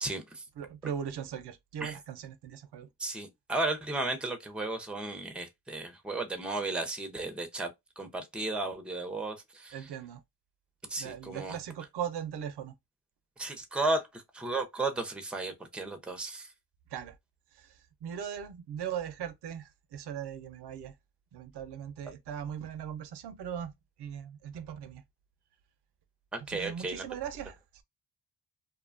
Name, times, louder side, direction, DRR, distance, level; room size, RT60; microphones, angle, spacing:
voice 1, 0.0-0.4 1.8-1.9 3.0-7.7 8.0-9.7 10.9-11.5 13.4-16.5 26.3-27.0, right 2 dB, 5° right, 0.6 m, -34 dB
voice 2, 0.6-2.9 9.7-10.2 10.9-12.7 16.9-17.2 17.5-20.9 21.3-23.7 24.0-25.0 26.4-27.8, right 9 dB, 75° right, 0.6 m, -39 dB
2.6 x 2.2 x 2.4 m
cardioid pair, 85°, 41 cm